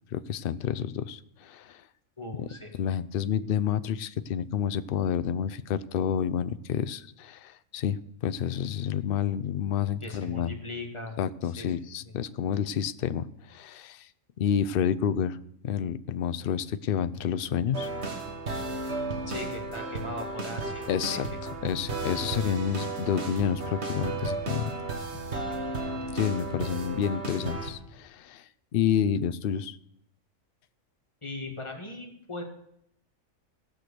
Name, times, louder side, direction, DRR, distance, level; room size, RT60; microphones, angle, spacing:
voice 1, 0.1-1.7 2.8-10.5 11.2-14.0 14.4-15.4 15.6-17.9 20.9-21.3 21.6-24.7 26.1-28.4 28.7-29.8, left 8 dB, 60° left, 12 dB, 0.6 m, -29 dB
voice 2, 2.2-2.7 10.0-11.2 11.4-11.8 12.1-12.2 19.3-21.2 31.2-32.4, left 2 dB, 20° left, 1 dB, 1.9 m, -39 dB
sound 1, 17.7-27.7, right 3 dB, 55° right, 1.7 m, -34 dB
16.0 x 6.1 x 6.6 m, 0.74 s
omnidirectional pair, 1.4 m